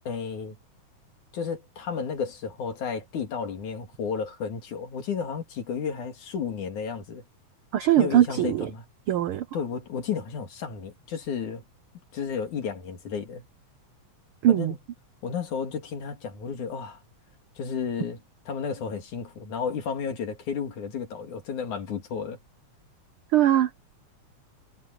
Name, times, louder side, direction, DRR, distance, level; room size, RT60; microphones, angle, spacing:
voice 1, 0.1-0.6 1.3-7.2 8.0-8.8 9.5-11.6 12.1-13.4 14.5-14.8 15.2-17.0 17.6-18.2 18.5-22.4, left 6 dB, 80° left, 4.1 m, -32 dB
voice 2, 7.7-8.7 9.1-9.4 14.4-14.7 23.3-23.9, right 12 dB, 80° right, 1.2 m, -21 dB
omnidirectional pair, 3.4 m